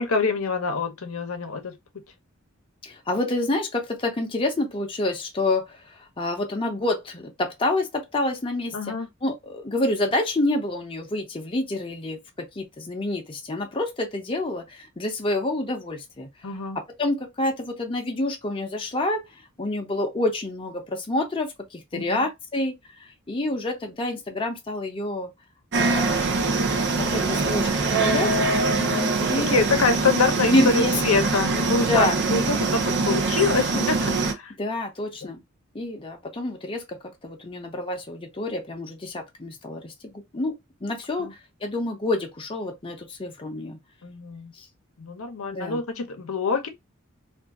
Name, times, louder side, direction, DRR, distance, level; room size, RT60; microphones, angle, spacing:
voice 1, 0.0-1.7 8.7-9.1 16.4-16.8 21.9-22.3 28.7-29.2 29.5-34.5 41.2-41.3 44.0-44.5 45.0-46.7, left 4 dB, 75° left, 0.7 m, -25 dB
voice 2, 2.8-8.9 9.2-16.3 17.0-19.3 19.6-22.7 23.0-25.3 25.7-26.5 27.0-28.4 29.2-29.6 30.5-30.9 31.9-32.2 33.7-34.3 34.6-35.4 35.7-37.0 37.2-43.8 44.5-44.6 45.5-45.8, left 2 dB, 25° left, 0.7 m, -28 dB
sound 1, 25.7-34.3, right 3 dB, 55° right, 0.7 m, -23 dB
2.6 x 2.4 x 3.5 m
head